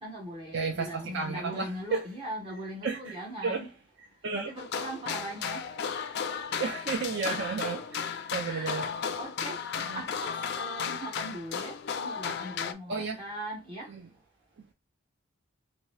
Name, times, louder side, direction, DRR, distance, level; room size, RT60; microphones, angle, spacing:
voice 1, 0.0-3.7 4.3-5.6 8.4-13.9, right 1 dB, 25° right, 0.8 m, -40 dB
voice 2, 0.5-2.0 2.8-3.1 3.4-3.7 4.2-4.5 6.6-8.9 9.9-10.0 12.9-13.2 13.9-14.1, right 4 dB, 55° right, 0.4 m, -32 dB
sound 1, 4.6-12.7, left 7 dB, 50° left, 0.3 m, -34 dB
2.8 x 2.6 x 3.1 m
head